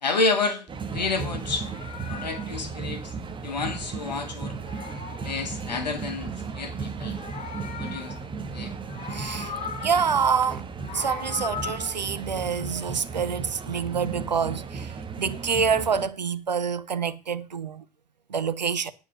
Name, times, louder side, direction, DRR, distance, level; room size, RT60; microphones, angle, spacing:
voice 1, 0.0-1.7 2.1-3.1 3.4-4.6 5.2-7.2 7.8-8.2 8.5-8.7, left 3 dB, 80° left, 1.8 m, -29 dB
sound 1, 0.7-16.1, right 5 dB, 25° right, 1.4 m, -35 dB
Meow, 1.4-4.1 4.4-6.1 6.9-8.5 8.8-10.3 10.6-12.0, left 7 dB, 35° left, 1.2 m, -39 dB
voice 2, 9.1-9.5 9.8-10.7 10.9-17.8 18.3-18.9, right 6 dB, 85° right, 0.7 m, -27 dB
sound 2, 10.2-17.2, right 9 dB, 60° right, 1.8 m, -41 dB
9.6 x 5.0 x 8.0 m
figure-of-eight pair, 75°, 21 cm